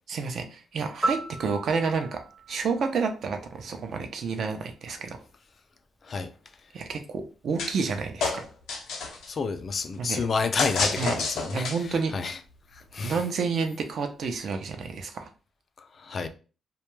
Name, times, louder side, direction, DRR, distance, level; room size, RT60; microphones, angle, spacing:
voice 1, 0.1-2.2 2.5-5.2 6.7-8.5 10.0-10.2 11.0-11.2 11.5-12.1 13.0-15.3, right 5 dB, 60° right, 0.5 m, -29 dB
Piano, 1.0-4.0 12.1-12.3, right 2 dB, 15° right, 0.6 m, -35 dB
sound 1, 7.6-7.9 8.2-9.3 10.6-12.0, left 4 dB, 90° left, 0.6 m, -29 dB
voice 2, 9.3-11.7 12.1-12.3 12.9-13.2 16.0-16.3, left 4 dB, 45° left, 0.3 m, -29 dB
2.2 x 2.1 x 3.0 m
cardioid pair, 110°, 0 cm